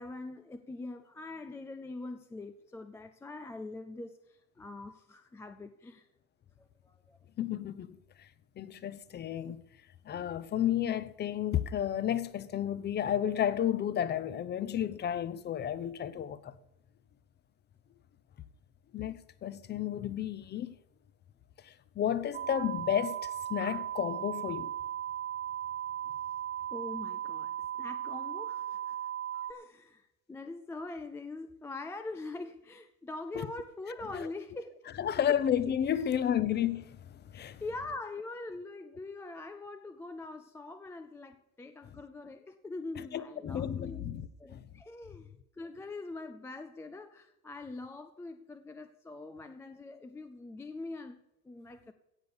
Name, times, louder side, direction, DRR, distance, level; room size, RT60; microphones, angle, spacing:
voice 1, 0.0-6.1 6.6-7.2 26.7-29.0 29.3-34.8 35.3-35.4 35.9-36.1 37.3-44.0 44.4-51.9, left 2 dB, 5° left, 0.4 m, -43 dB
voice 2, 7.4-8.0 8.6-9.6 10.1-16.6 18.9-20.7 21.6-24.7 33.4-33.5 34.1-34.3 35.0-37.6 43.1-44.3 44.5-44.6, left 10 dB, 25° left, 0.7 m, -32 dB
sound 1, 22.3-29.5, right 11 dB, 20° right, 0.9 m, -37 dB
16.5 x 6.6 x 7.1 m
supercardioid pair, 120°, 43 cm